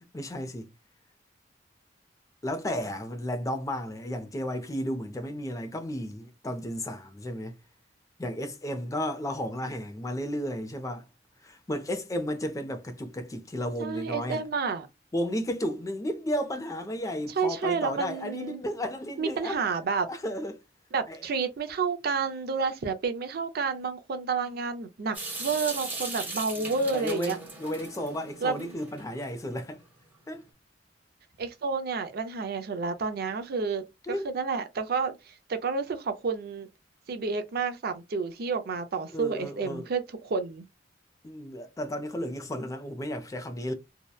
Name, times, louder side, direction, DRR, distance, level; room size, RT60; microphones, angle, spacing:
voice 1, 0.1-0.7 2.4-7.5 8.2-11.0 11.4-14.4 15.1-19.6 20.1-20.6 21.1-21.2 26.6-29.8 30.3-30.4 34.1-34.3 39.1-39.9 41.2-43.7, equal, 20° left, 0.4 m, -33 dB
voice 2, 13.8-14.9 17.4-18.6 19.2-20.1 20.9-27.4 28.4-28.8 31.4-36.7 37.1-40.7, right 5 dB, 55° right, 0.5 m, -30 dB
Water tap faucet / Sink (filling or washing) / Drip, 25.1-29.2, right 2 dB, 10° right, 0.8 m, -38 dB
2.7 x 2.1 x 2.2 m
head